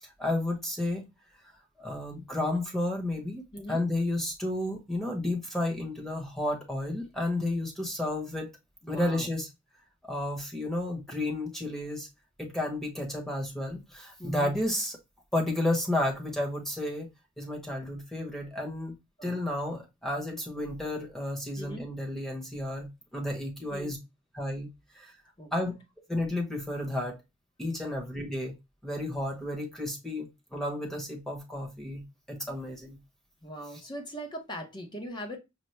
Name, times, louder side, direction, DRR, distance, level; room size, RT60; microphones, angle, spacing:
voice 1, 0.2-1.1 1.8-3.4 3.7-8.5 8.9-9.5 10.1-12.1 12.4-15.0 15.3-17.1 17.4-19.0 19.2-24.0 24.3-25.1 25.5-25.7 26.1-27.2 27.6-28.5 28.8-32.0 32.3-33.0, left 1 dB, ahead, 1.0 m, -32 dB
voice 2, 3.5-3.8 8.8-9.3 14.2-14.6 19.2-19.4 21.6-21.9 23.7-23.9 25.4-25.7 27.8-27.9 33.4-35.4, equal, 20° left, 0.8 m, -40 dB
5.5 x 2.1 x 3.1 m
head